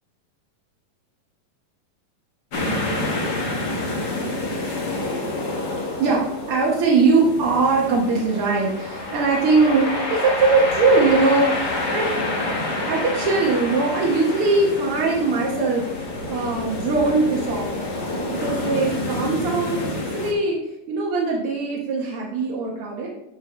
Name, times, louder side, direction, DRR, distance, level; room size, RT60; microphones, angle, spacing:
sound 1, 2.5-20.3, left 2 dB, 70° left, 0.9 m, -28 dB
voice 1, 6.0-12.1 12.9-17.7 18.3-20.6 20.9-23.1, right 3 dB, 75° right, -2 dB, 1.3 m, -21 dB
11.0 x 7.4 x 3.0 m, 0.90 s
omnidirectional pair, 4.1 m